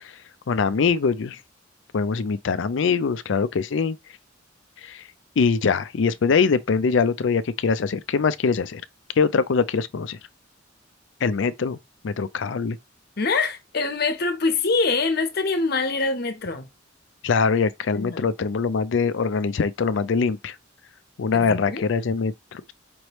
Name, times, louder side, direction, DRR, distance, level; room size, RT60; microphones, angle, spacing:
voice 1, 0.5-1.4 1.9-4.0 4.8-5.0 5.4-8.8 9.2-10.2 11.2-11.8 12.0-12.8 17.2-20.6 21.2-22.7, left 5 dB, 70° left, 0.4 m, -23 dB
voice 2, 13.2-16.7 17.9-18.2 21.3-21.8, left 3 dB, 55° left, 0.9 m, -24 dB
5.2 x 3.2 x 3.0 m
head